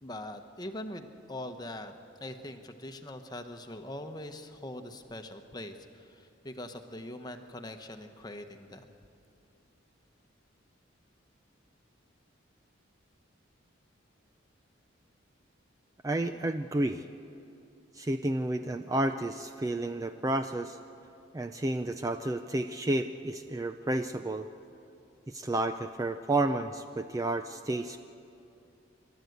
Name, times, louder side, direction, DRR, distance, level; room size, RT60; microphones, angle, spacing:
voice 1, 0.0-8.9, left 1 dB, 20° left, 7 dB, 1.0 m, -42 dB
voice 2, 16.0-17.0 17.9-20.8 21.3-24.5 25.3-28.0, right 2 dB, 15° right, 8 dB, 0.4 m, -31 dB
29.0 x 12.0 x 7.9 m, 2.8 s
head